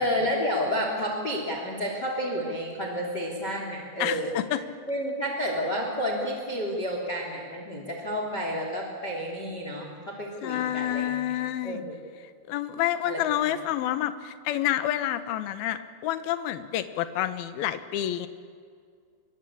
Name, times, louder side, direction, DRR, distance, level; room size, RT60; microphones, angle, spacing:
voice 1, 0.0-4.3 4.9-11.2 11.6-11.9 13.0-13.5, equal, 25° left, 1 dB, 3.1 m, -30 dB
voice 2, 4.0-4.6 10.4-11.8 12.5-18.3, left 12 dB, 70° left, 11 dB, 2.5 m, -28 dB
25.5 x 23.5 x 8.7 m, 2.1 s
omnidirectional pair, 5.5 m